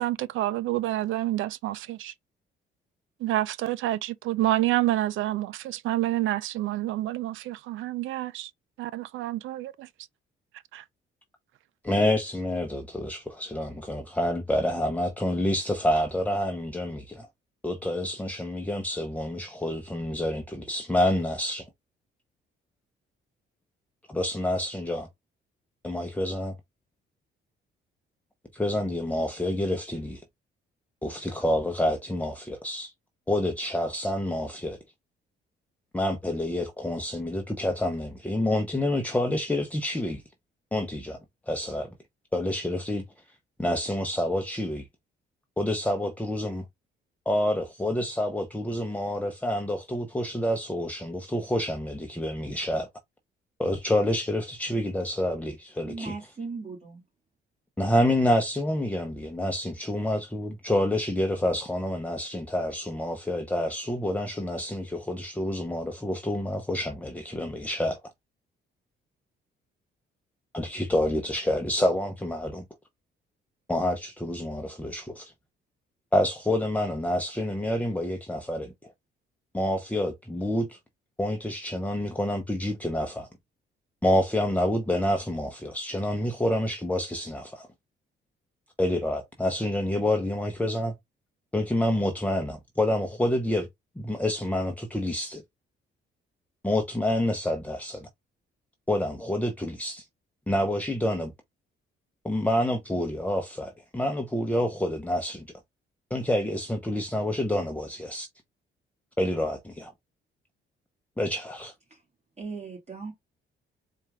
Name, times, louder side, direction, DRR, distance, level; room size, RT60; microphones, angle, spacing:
voice 1, 0.0-2.1 3.2-8.5 8.8-9.9 10.7-10.8, right 15 dB, 80° right, 0.5 m, -28 dB
voice 2, 11.8-17.3 17.6-21.7 24.1-25.1 25.8-26.6 28.5-30.2 31.0-32.9 33.3-34.8 35.9-40.2 40.7-41.2 41.5-41.9 42.3-43.0 43.6-44.9 45.6-46.6 47.3-52.9 53.6-56.1 57.8-68.0 70.5-72.6 73.7-75.3 76.1-78.9 79.5-80.8 81.2-83.3 84.0-87.7 88.8-90.9 91.5-93.7 94.0-95.4 96.6-98.1 98.9-100.0 100.5-101.3 102.2-105.5 106.1-108.3 109.2-109.9 111.2-111.7, left 1 dB, 5° left, 0.8 m, -28 dB
voice 3, 55.8-57.0 111.9-112.0 112.4-113.1, right 4 dB, 35° right, 2.3 m, -37 dB
4.3 x 2.5 x 3.5 m
cardioid pair, 90°, 20 cm